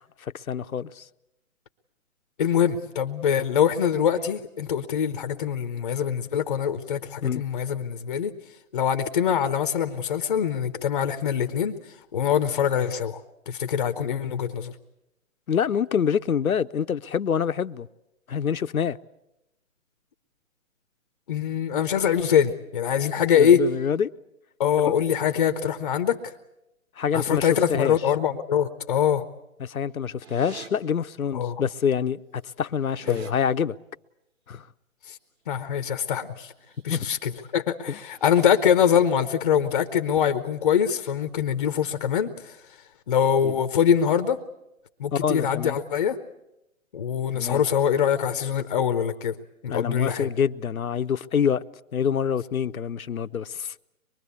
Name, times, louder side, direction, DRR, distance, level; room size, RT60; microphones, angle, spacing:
voice 1, 0.2-1.0 7.2-7.4 15.5-17.9 18.3-19.0 23.3-24.1 24.8-24.9 27.0-28.0 29.6-32.2 32.6-33.8 34.5-34.7 36.9-37.1 37.9-38.0 43.4-43.5 45.1-45.8 47.3-47.6 49.7-51.6 51.9-53.7, left 7 dB, 80° left, 0.8 m, -26 dB
voice 2, 2.4-8.3 8.7-11.8 12.1-13.2 13.5-14.7 21.3-23.6 24.6-26.2 27.1-29.3 31.3-31.6 33.1-33.2 35.1-35.2 35.5-36.5 36.8-42.6 43.1-44.4 45.0-46.2 46.9-49.4 49.6-50.3, left 8 dB, 30° left, 0.8 m, -23 dB
sound 1, 30.2-30.7 31.9-32.0 32.2-33.3 36.5-36.8 37.2-37.5 38.0-38.5, right 7 dB, 50° right, 3.6 m, -46 dB
24.0 x 22.5 x 8.3 m
hypercardioid pair, 150°, 41 cm